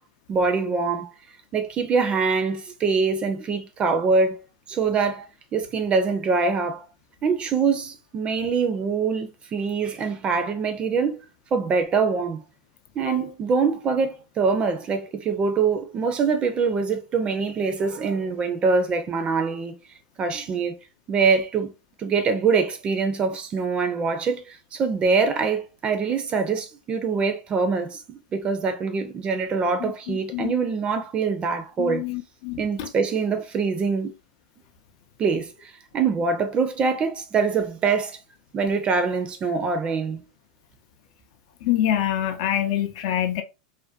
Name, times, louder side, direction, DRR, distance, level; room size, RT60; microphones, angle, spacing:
voice 1, 0.3-1.1 1.5-5.3 5.5-6.9 7.2-11.2 11.5-12.4 13.0-19.7 20.2-20.7 21.1-21.7 22.0-32.0 32.6-34.1 35.2-38.2 38.5-40.2, right 5 dB, 30° right, 0.4 m, -24 dB
voice 2, 29.8-30.5 31.8-32.9 41.6-43.4, left 11 dB, 65° left, 0.4 m, -26 dB
2.5 x 2.1 x 2.4 m
hypercardioid pair, 105°, 4 cm